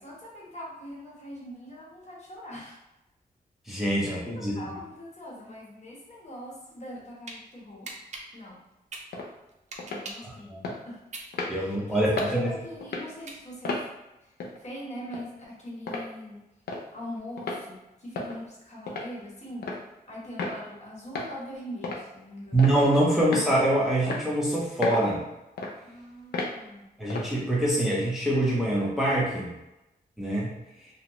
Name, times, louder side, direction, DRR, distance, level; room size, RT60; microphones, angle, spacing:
voice 1, 0.0-2.8 4.0-7.9 8.3-8.6 9.9-10.5 10.8-11.0 11.6-13.8 14.2-14.3 14.6-16.4 16.9-19.7 20.1-22.7 25.8-26.9, equal, 45° left, -5 dB, 1.0 m, -42 dB
voice 2, 3.7-4.6 10.2-10.6 11.5-12.5 22.5-25.2 27.0-29.5 30.2-30.5, right 1 dB, ahead, -5 dB, 0.6 m, -25 dB
sound 1, 7.0-7.4 7.8-10.3 10.7-13.8, right 3 dB, 45° right, 0.5 m, -42 dB
sound 2, 9.1-9.3 9.8-10.1 10.6-10.8 11.3-11.5 12.2-12.3 12.8-13.1 13.6-13.9 14.4-14.6 15.1-15.2 15.9-16.1 16.7-16.8 17.4-17.6 18.2-18.4 18.9-19.1 19.6-19.8 20.4-20.6 21.2-21.3 21.8-22.0 22.6-22.8 23.3-23.5 24.1-24.2 24.8-25.1 25.6-25.7 26.3-26.5 27.1-27.3, left 3 dB, 85° left, 0.5 m, -32 dB
2.7 x 2.1 x 3.0 m, 0.94 s
cardioid pair, 95°, 16 cm